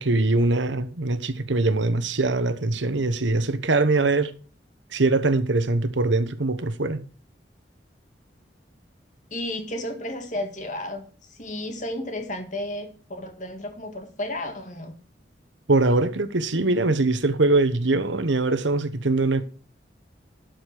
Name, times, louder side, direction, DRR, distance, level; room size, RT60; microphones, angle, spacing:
voice 1, 0.0-4.3 4.9-7.0 15.7-19.4, right 2 dB, 80° right, 1.0 m, -22 dB
voice 2, 9.3-15.0, left 1 dB, 40° left, 2.0 m, -33 dB
12.0 x 5.2 x 6.2 m
head